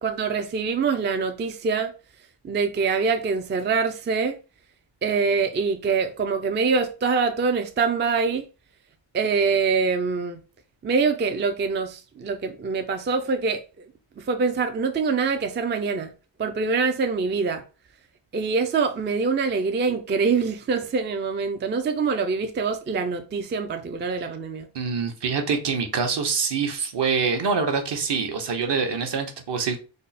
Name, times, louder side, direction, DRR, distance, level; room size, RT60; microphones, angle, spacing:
voice 1, 0.0-1.9 2.4-4.4 5.0-8.5 9.1-10.4 10.8-13.9 14.2-16.1 16.4-17.6 18.3-24.7, right 5 dB, 25° right, 0.4 m, -24 dB
voice 2, 24.7-29.8, right 5 dB, 60° right, 1.0 m, -25 dB
3.6 x 2.1 x 4.0 m
cardioid pair, 95°, 47 cm